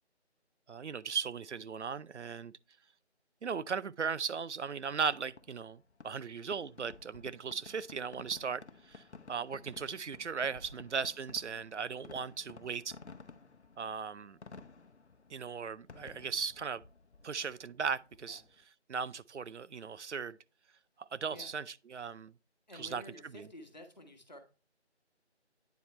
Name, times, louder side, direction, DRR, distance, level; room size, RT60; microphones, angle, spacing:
voice 1, 0.7-2.5 3.4-9.0 9.3-12.9 13.8-14.4 15.3-16.8 17.2-18.4 18.9-20.4 21.0-21.6 21.9-22.3 22.8-23.0, right 6 dB, 80° right, 0.6 m, -37 dB
Fireworks, 5.1-18.6, left 4 dB, 70° left, 0.9 m, -55 dB
voice 2, 22.7-24.4, left 1 dB, 40° left, 1.3 m, -51 dB
9.3 x 4.4 x 3.2 m
figure-of-eight pair, 175°, 35 cm